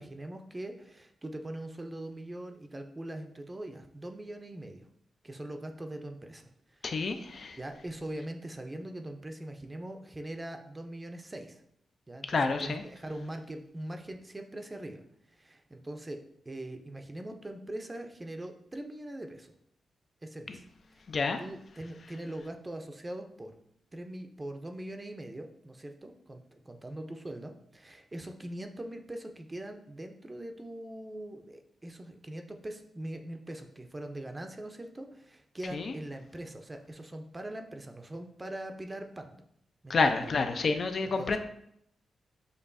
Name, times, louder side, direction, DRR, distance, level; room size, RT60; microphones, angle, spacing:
voice 1, 0.0-4.9 5.2-7.1 7.6-11.6 12.1-12.3 12.6-16.2 16.5-19.5 20.2-23.6 23.9-39.4 39.8-40.3 41.2-41.4, right 1 dB, 25° right, 5 dB, 0.5 m, -42 dB
voice 2, 6.8-7.6 12.3-12.8 20.5-20.6 21.1-21.4 35.7-35.9 39.9-41.4, left 4 dB, 60° left, 7 dB, 0.5 m, -29 dB
6.7 x 2.6 x 2.6 m, 0.72 s
cardioid pair, 65°, 0 cm